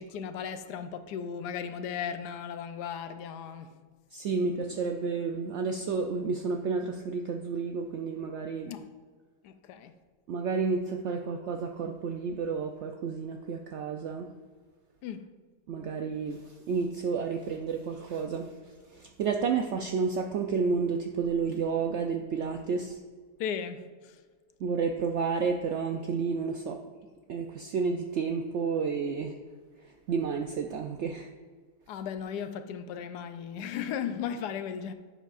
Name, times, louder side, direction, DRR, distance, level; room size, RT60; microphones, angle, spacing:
voice 1, 0.0-3.8 8.7-8.9 9.4-9.9 15.0-15.3 23.4-24.2 31.9-34.9, left 7 dB, 90° left, 1.2 m, -36 dB
voice 2, 4.1-8.7 10.3-14.3 15.7-23.0 24.6-26.8 27.3-29.3 29.8-31.3, right 5 dB, 75° right, 0.6 m, -31 dB
11.0 x 8.0 x 2.5 m
omnidirectional pair, 1.7 m